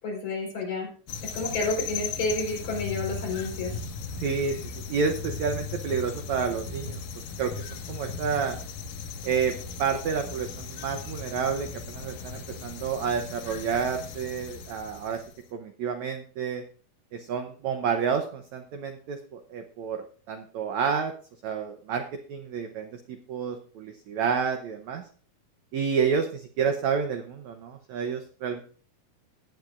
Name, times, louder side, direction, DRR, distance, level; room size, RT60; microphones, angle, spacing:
voice 1, 0.0-0.9 1.3-3.8, left 3 dB, 55° left, -1 dB, 5.6 m, -30 dB
sound 1, 1.1-15.4, left 5 dB, 70° left, 2.7 m, -37 dB
voice 2, 4.2-7.0 7.4-8.6 9.2-9.5 9.8-15.2 15.5-16.6 17.1-21.1 21.4-22.0 22.3-25.0 25.7-28.6, right 6 dB, 75° right, 6 dB, 1.7 m, -29 dB
17.0 x 10.5 x 2.5 m, 0.42 s
omnidirectional pair, 4.3 m